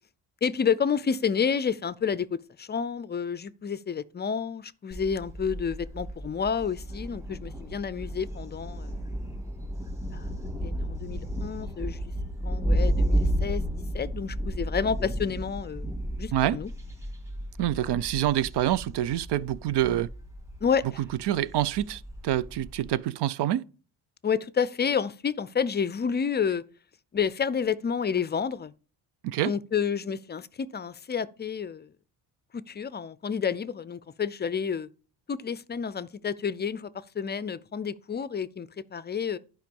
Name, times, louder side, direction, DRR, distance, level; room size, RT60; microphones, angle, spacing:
voice 1, 0.4-9.0 10.1-10.2 10.6-12.1 12.4-15.9 16.2-16.7 20.6-20.8 24.2-26.6 27.1-28.7 29.4-31.9 32.5-34.9 35.3-39.4, left 6 dB, 25° left, 0.4 m, -30 dB
Thunder, 4.9-23.0, equal, 5° right, 1.8 m, -32 dB
voice 2, 17.6-20.1 21.2-23.6 29.2-29.5, right 12 dB, 70° right, 0.6 m, -26 dB
10.5 x 5.1 x 5.3 m
cardioid pair, 110°, 42 cm